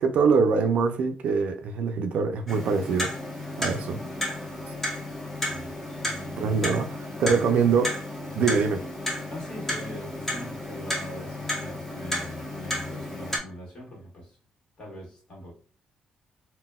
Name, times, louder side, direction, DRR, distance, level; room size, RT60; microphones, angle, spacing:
voice 1, 0.0-3.1 3.6-4.0 6.4-6.9 7.2-7.9 8.4-8.8, right 5 dB, 65° right, 0.4 m, -23 dB
Clock, 2.5-13.4, left 1 dB, 10° left, 0.7 m, -33 dB
voice 2, 5.5-6.7 7.5-7.6 9.2-14.4 14.8-15.5, equal, 35° left, 1.4 m, -42 dB
3.9 x 2.1 x 2.2 m
cardioid pair, 160°, 2 cm